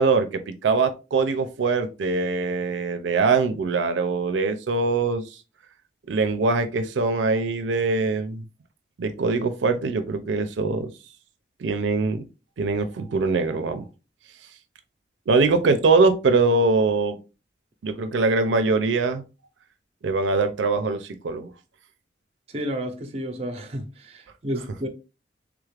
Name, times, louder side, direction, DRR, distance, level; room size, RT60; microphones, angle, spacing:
voice 1, 0.0-5.2 6.1-8.4 9.0-10.9 11.6-12.2 12.6-13.9 15.3-17.2 17.8-19.2 20.0-21.5, right 3 dB, 85° right, 0.4 m, -22 dB
voice 2, 22.5-24.9, equal, 35° right, 0.6 m, -31 dB
3.5 x 2.4 x 3.2 m
head